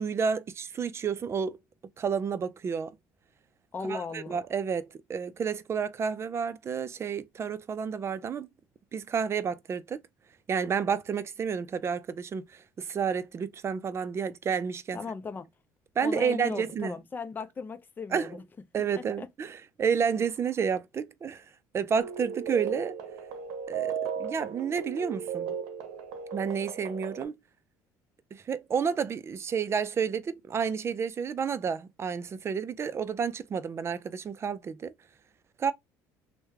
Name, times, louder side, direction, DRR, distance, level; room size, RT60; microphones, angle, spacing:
voice 1, 0.0-1.6 2.0-3.0 3.8-8.5 8.9-10.0 10.5-15.0 16.0-17.0 18.1-18.4 18.7-21.4 21.7-22.9 23.7-25.6 26.3-27.3 28.3-34.9 35.6-35.7, right 6 dB, 35° right, 0.4 m, -30 dB
voice 2, 3.7-4.4 14.9-15.5 16.0-18.4 19.2-19.3, left 4 dB, 25° left, 0.6 m, -37 dB
sound 1, 22.0-27.2, right 7 dB, 85° right, 0.7 m, -36 dB
3.0 x 2.2 x 3.4 m
supercardioid pair, 90°, 8 cm